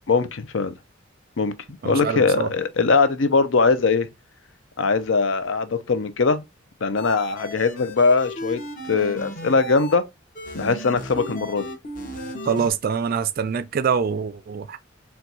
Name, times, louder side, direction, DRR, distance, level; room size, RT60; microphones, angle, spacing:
voice 1, 0.1-0.7 1.4-1.5 1.8-4.1 4.8-6.4 6.8-8.6 8.9-10.0 10.5-11.7, left 4 dB, 70° left, 0.6 m, -21 dB
voice 2, 1.8-2.5 12.4-14.8, right 6 dB, 50° right, 0.4 m, -25 dB
sound 1, 7.0-9.9 10.3-12.7, equal, 45° left, 1.0 m, -35 dB
4.4 x 2.3 x 3.9 m
head